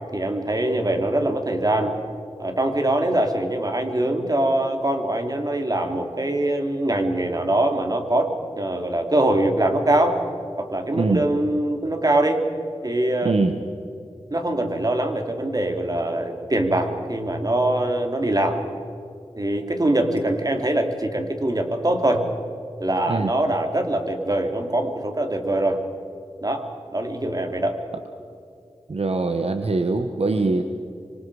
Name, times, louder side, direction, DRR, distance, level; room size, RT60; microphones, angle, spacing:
voice 1, 0.1-1.9 2.4-8.3 8.6-10.2 10.6-12.4 12.8-13.4 14.3-18.6 19.4-22.3 22.8-25.8 26.4-26.7 26.9-27.8, right 1 dB, 35° right, 4 dB, 3.0 m, -23 dB
voice 2, 10.9-11.3 13.2-13.6 23.1-23.3 28.9-30.6, right 3 dB, 70° right, 7 dB, 1.2 m, -22 dB
25.5 x 25.5 x 4.9 m, 2.5 s
wide cardioid pair, 60°, 11 cm